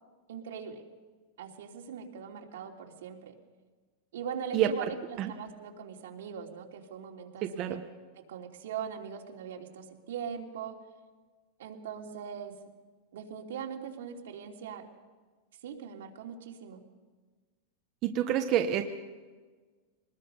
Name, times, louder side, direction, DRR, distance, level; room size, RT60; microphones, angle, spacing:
voice 1, 0.3-0.8 1.4-3.3 4.1-7.8 8.2-10.8 11.6-12.5 13.1-14.9 15.6-16.8, right 7 dB, 80° right, 1 dB, 3.1 m, -41 dB
voice 2, 7.4-7.8 18.0-18.8, right 11 dB, 30° right, 5 dB, 1.0 m, -27 dB
24.0 x 20.0 x 5.4 m, 1.4 s
supercardioid pair, 170°, 0 cm